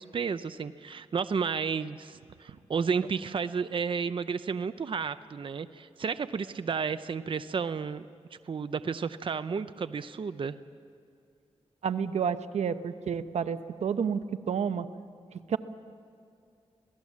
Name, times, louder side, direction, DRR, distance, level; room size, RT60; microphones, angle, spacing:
voice 1, 0.0-8.1 8.5-10.6, right 5 dB, 50° right, 12 dB, 0.6 m, -32 dB
voice 2, 11.8-14.9 15.3-15.6, right 7 dB, 85° right, 11 dB, 0.8 m, -30 dB
26.5 x 18.0 x 7.4 m, 2.5 s
cardioid pair, 85°, 11 cm